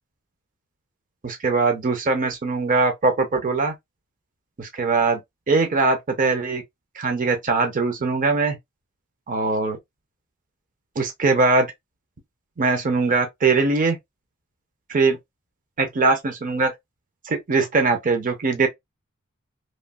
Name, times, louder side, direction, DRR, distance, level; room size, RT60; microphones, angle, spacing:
voice 1, 1.2-3.7 4.6-5.2 5.5-6.6 7.0-8.6 9.3-9.8 11.0-11.7 12.6-14.0 14.9-15.2 15.8-16.7 17.3-18.7, right 3 dB, 40° right, 0.6 m, -21 dB
3.0 x 2.4 x 2.3 m
head